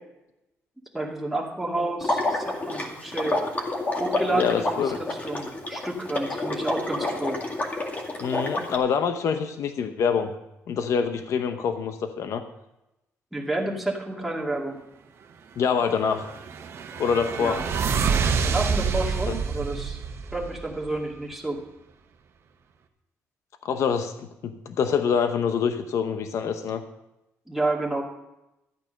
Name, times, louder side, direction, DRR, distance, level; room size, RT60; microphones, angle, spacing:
voice 1, 0.9-3.3 4.0-7.4 13.3-14.8 17.4-17.6 18.4-20.0 20.3-21.6 27.5-28.0, right 2 dB, 5° right, -2 dB, 2.4 m, -30 dB
Water / Liquid, 2.0-8.8, left 2 dB, 30° left, 2.1 m, -29 dB
voice 2, 4.3-5.0 8.2-10.3 10.7-12.4 15.6-16.3 17.0-17.6 23.6-26.8, left 6 dB, 65° left, 8 dB, 0.9 m, -25 dB
sound 1, 16.0-21.0, right 6 dB, 55° right, 1.3 m, -27 dB
13.5 x 9.1 x 5.3 m, 0.92 s
cardioid pair, 120°, 5 cm